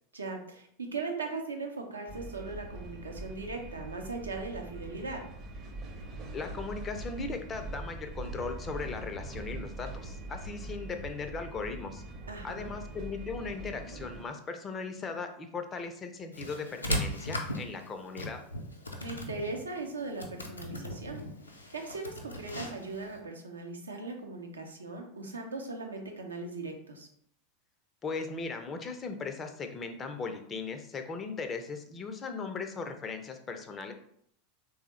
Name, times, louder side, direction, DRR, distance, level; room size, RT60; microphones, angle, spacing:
voice 1, 0.1-5.2 12.3-12.7 19.0-21.2 21.7-27.1, right 3 dB, 75° right, 2 dB, 0.5 m, -39 dB
sound 1, 2.1-14.2, right 2 dB, 35° right, 0.6 m, -42 dB
voice 2, 6.3-12.0 12.4-18.4 28.0-33.9, left 4 dB, 25° left, 6 dB, 0.4 m, -38 dB
sound 2, 16.3-23.2, equal, 80° left, 0.4 m, -38 dB
3.4 x 2.0 x 3.0 m, 0.67 s
figure-of-eight pair, 85°, 0 cm